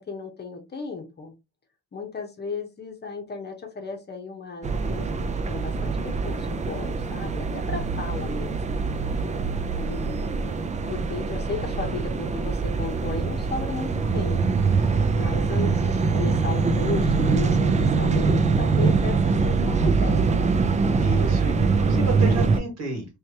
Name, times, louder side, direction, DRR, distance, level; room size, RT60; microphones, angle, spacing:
voice 1, 0.0-1.3 1.9-8.8 9.7-14.6 15.1-20.5, left 4 dB, 35° left, 4 dB, 0.9 m, -35 dB
sound 1, 4.6-22.6, right 4 dB, 25° right, 0.4 m, -23 dB
voice 2, 21.0-23.1, right 3 dB, 60° right, 3 dB, 2.0 m, -31 dB
3.2 x 3.1 x 2.8 m, 0.25 s
cardioid pair, 100°, 31 cm